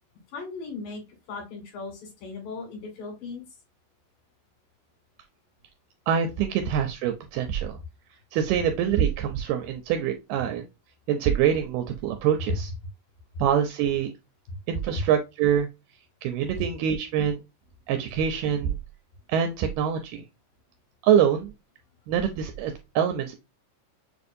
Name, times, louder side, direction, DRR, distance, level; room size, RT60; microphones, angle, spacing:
voice 1, 0.3-1.0 1.3-3.4 14.5-14.6, left 4 dB, 90° left, 1 dB, 3.6 m, -37 dB
voice 2, 6.1-7.8 8.3-10.6 11.1-12.7 13.4-14.1 14.7-15.7 16.2-17.4 17.9-18.8 19.3-20.2 21.0-21.5 22.1-23.4, right 9 dB, 85° right, 6 dB, 2.1 m, -25 dB
6.2 x 2.6 x 2.5 m, 0.25 s
omnidirectional pair, 3.8 m